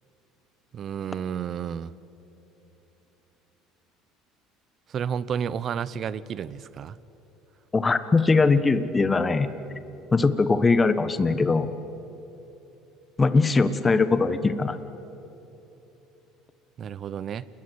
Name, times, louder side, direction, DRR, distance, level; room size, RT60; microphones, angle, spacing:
voice 1, 0.7-1.9 4.9-7.0 16.8-17.5, right 8 dB, 45° right, 18 dB, 0.9 m, -31 dB
voice 2, 7.7-9.5 10.1-11.7 13.2-14.8, left 4 dB, 20° left, 11 dB, 1.4 m, -21 dB
29.5 x 21.0 x 8.2 m, 3.0 s
supercardioid pair, 105°, 0 cm